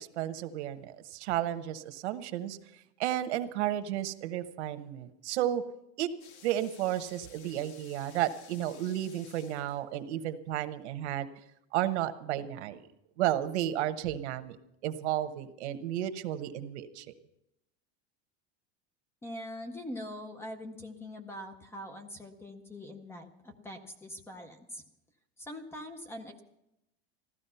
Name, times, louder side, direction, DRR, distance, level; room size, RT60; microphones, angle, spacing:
voice 1, 0.0-2.6 3.0-5.6 6.0-6.1 6.4-11.3 11.7-12.8 13.2-14.6 14.8-17.1, right 12 dB, 85° right, 10 dB, 1.2 m, -32 dB
sound 1, 6.2-10.1, left 7 dB, 85° left, 1.9 m, -55 dB
voice 2, 19.2-24.8 25.4-26.4, left 1 dB, 5° left, 8 dB, 0.6 m, -43 dB
15.0 x 12.5 x 5.6 m, 0.84 s
supercardioid pair, 180°, 33 cm